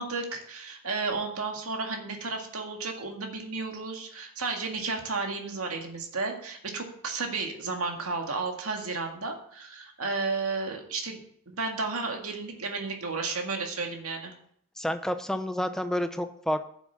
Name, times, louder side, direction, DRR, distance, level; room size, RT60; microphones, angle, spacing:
voice 1, 0.0-14.3, right 4 dB, 90° right, 3 dB, 1.9 m, -33 dB
voice 2, 14.8-16.6, equal, ahead, 8 dB, 0.7 m, -29 dB
10.5 x 7.1 x 6.9 m, 0.65 s
head